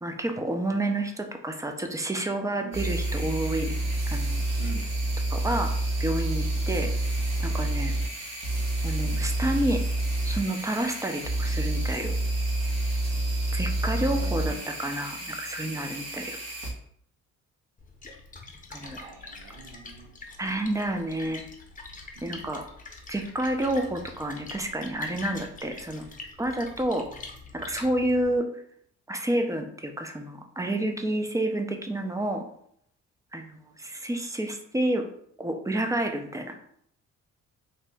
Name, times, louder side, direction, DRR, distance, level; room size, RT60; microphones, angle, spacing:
voice 1, 0.0-3.7 4.1-4.4 5.3-6.9 7.4-7.9 8.8-9.8 10.2-12.2 13.5-16.4 18.7-19.0 20.4-21.4 22.2-22.7 23.1-26.0 26.4-27.1 27.5-28.5 29.1-32.4 33.3-35.1 35.4-36.6, right 1 dB, 10° right, 5 dB, 0.4 m, -29 dB
voice 2, 2.5-2.8 4.6-4.9 9.0-9.3 14.1-14.7 18.8-20.1 22.1-22.5, right 4 dB, 85° right, 2 dB, 0.6 m, -44 dB
sound 1, 2.7-16.7, right 1 dB, 60° right, 1.1 m, -28 dB
Splash splatter, 17.8-28.4, left 3 dB, 25° left, 0.7 m, -44 dB
2.9 x 2.7 x 3.4 m, 0.68 s
cardioid pair, 90°, 30 cm